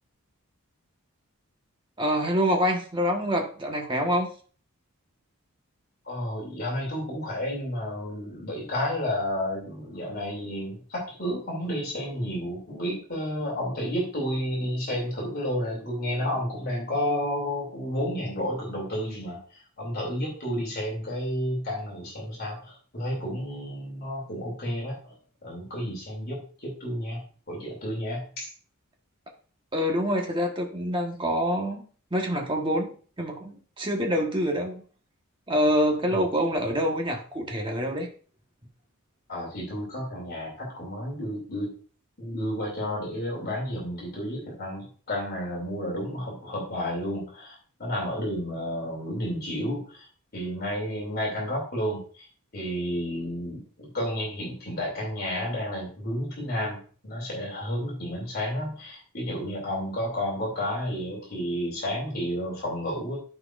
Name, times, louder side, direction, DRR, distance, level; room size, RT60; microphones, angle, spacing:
voice 1, 2.0-4.3 29.7-31.8 32.1-34.8 35.5-38.1, equal, 20° right, 1 dB, 1.3 m, -26 dB
voice 2, 6.0-25.1 25.4-28.5 36.1-36.3 39.3-41.7 42.2-50.1 50.3-52.3 52.5-63.2, equal, 45° left, -2 dB, 2.7 m, -31 dB
13.5 x 4.6 x 2.5 m, 0.41 s
head